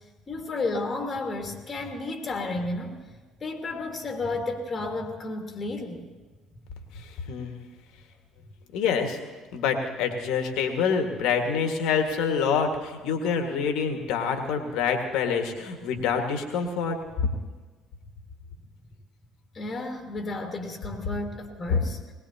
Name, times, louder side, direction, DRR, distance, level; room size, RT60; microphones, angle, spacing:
voice 1, 0.3-3.0 3.4-6.0 19.5-22.0, left 2 dB, 35° left, 2 dB, 2.2 m, -32 dB
voice 2, 6.9-7.6 8.7-9.2 9.5-17.0 17.2-17.3 21.7-21.8, left 6 dB, 65° left, 4 dB, 1.8 m, -26 dB
21.0 x 18.5 x 2.9 m, 1.3 s
hypercardioid pair, 55°, 0 cm